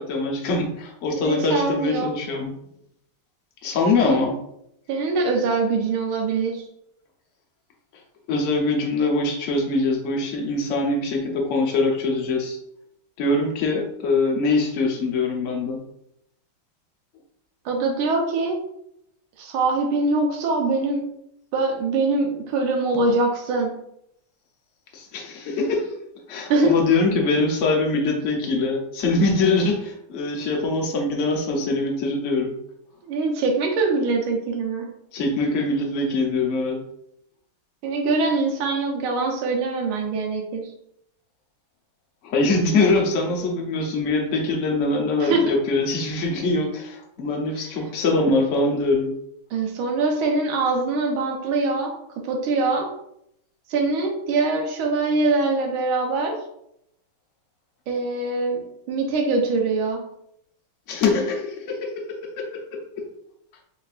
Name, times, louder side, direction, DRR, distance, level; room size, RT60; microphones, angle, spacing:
voice 1, 0.0-2.5 3.6-4.4 8.3-12.6 13.2-15.8 24.9-25.9 26.3-32.5 35.1-36.8 42.2-49.1 60.9-63.1, left 3 dB, 55° left, 1 dB, 0.8 m, -23 dB
voice 2, 1.2-2.1 4.1-4.3 4.9-6.6 17.6-18.6 19.4-21.1 21.5-23.7 26.5-26.7 33.0-34.9 37.8-40.6 45.2-45.4 49.5-51.9 52.2-52.9 53.7-56.4 57.9-58.6 58.9-60.0, right 3 dB, 85° right, 1 dB, 1.6 m, -23 dB
4.2 x 4.1 x 2.5 m, 0.76 s
omnidirectional pair, 2.2 m